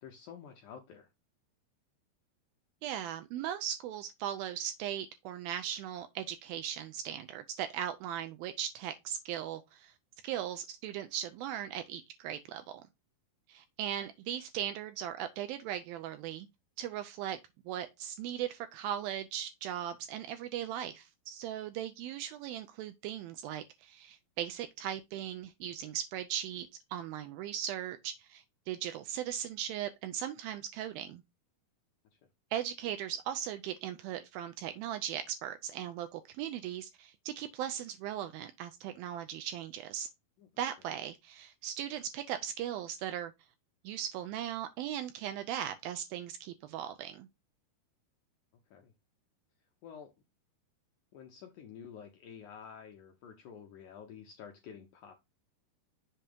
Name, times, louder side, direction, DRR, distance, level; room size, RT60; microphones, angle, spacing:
voice 1, 0.0-1.1 40.4-40.5 48.7-48.9 49.8-50.1 51.1-55.1, left 7 dB, 75° left, 1.8 m, -50 dB
voice 2, 2.8-9.9 10.2-12.9 13.5-16.5 16.8-17.4 17.7-31.2 32.5-40.1 40.6-43.3 43.8-47.3, right 10 dB, 80° right, 2.2 m, -38 dB
7.4 x 2.8 x 5.1 m
omnidirectional pair, 4.5 m